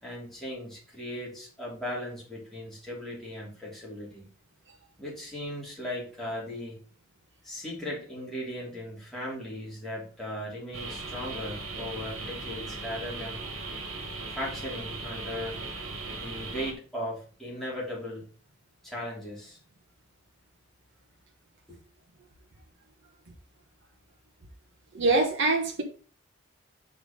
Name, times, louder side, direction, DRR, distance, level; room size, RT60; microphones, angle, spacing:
voice 1, 0.0-4.3 5.0-6.8 7.4-13.4 14.3-15.6 16.1-18.2 18.8-19.6 21.7-21.8, left 1 dB, ahead, -6 dB, 3.3 m, -37 dB
sound 1, 10.7-16.7, right 3 dB, 80° right, 2.1 m, -38 dB
voice 2, 24.9-25.8, right 3 dB, 60° right, 0 dB, 1.2 m, -24 dB
6.0 x 4.9 x 5.3 m, 0.41 s
head